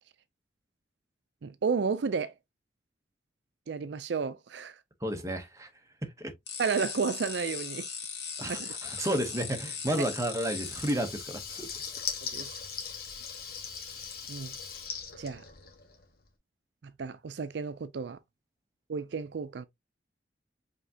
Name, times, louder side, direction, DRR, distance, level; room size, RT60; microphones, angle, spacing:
voice 1, 1.4-2.3 3.7-4.8 6.6-7.8 8.6-8.7 12.3-12.5 14.3-14.5 15.2-15.4 17.0-18.2 18.9-19.7, right 5 dB, 70° right, 0.4 m, -32 dB
voice 2, 5.0-5.7 6.0-6.3 8.4-11.8, right 1 dB, 15° right, 0.9 m, -32 dB
sound 1, 6.5-10.9, left 6 dB, 70° left, 2.1 m, -38 dB
Water tap faucet / Liquid, 10.5-16.1, left 6 dB, 55° left, 1.3 m, -40 dB
5.1 x 3.4 x 2.8 m
head